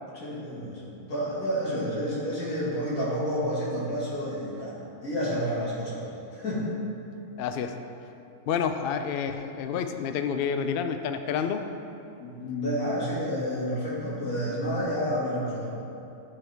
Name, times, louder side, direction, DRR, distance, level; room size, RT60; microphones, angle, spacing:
voice 1, 0.1-0.8 1.1-4.7 5.0-6.0 6.3-6.8 12.2-15.7, equal, 75° left, -7 dB, 2.5 m, -29 dB
voice 2, 7.4-7.8 8.5-11.7, left 7 dB, 90° left, 8 dB, 0.5 m, -29 dB
12.0 x 5.5 x 3.5 m, 2.8 s
omnidirectional pair, 1.5 m